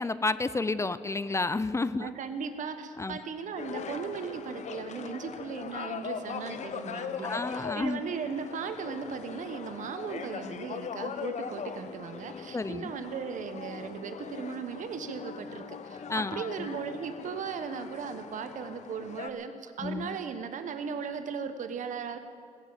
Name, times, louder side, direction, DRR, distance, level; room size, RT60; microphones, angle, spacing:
voice 1, 0.0-2.1 3.0-3.2 7.2-8.0 12.5-12.9 16.1-16.7 19.8-20.2, left 3 dB, 20° left, 15 dB, 0.5 m, -31 dB
voice 2, 2.0-22.2, right 6 dB, 75° right, 9 dB, 1.2 m, -37 dB
sound 1, 3.6-19.3, left 6 dB, 60° left, 0.9 m, -40 dB
18.5 x 7.8 x 8.9 m, 2.3 s
cardioid pair, 85°, 13 cm